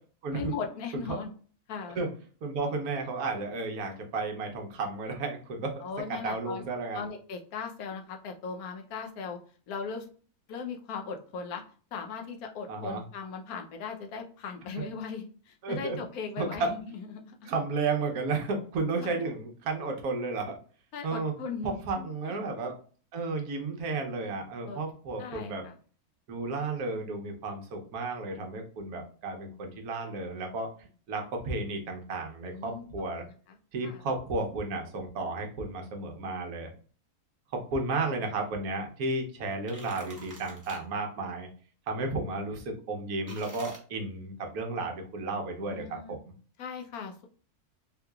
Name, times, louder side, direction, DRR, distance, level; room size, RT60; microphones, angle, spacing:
voice 1, 0.3-1.3 1.7-2.0 5.8-6.6 6.9-9.4 9.7-10.1 10.5-11.6 11.9-16.8 17.3-17.5 19.0-19.2 20.9-21.7 22.2-22.3 24.7-24.8 25.2-25.7 32.4-32.8 33.2-33.5 33.8-34.0 45.6-46.2 46.6-47.3, left 5 dB, 75° left, 4 dB, 1.1 m, -38 dB
voice 2, 2.4-5.8 6.1-7.1 12.7-13.0 15.6-16.0 16.4-16.7 17.5-20.6 21.0-21.3 21.6-22.7 23.1-25.6 26.3-30.7 31.1-33.2 33.7-36.7 37.5-41.5 41.9-46.2, right 3 dB, 75° right, 3 dB, 1.3 m, -33 dB
sound 1, 39.5-40.8 43.3-43.8, right 2 dB, 15° right, 0.7 m, -47 dB
3.8 x 2.8 x 2.3 m, 0.41 s
omnidirectional pair, 1.6 m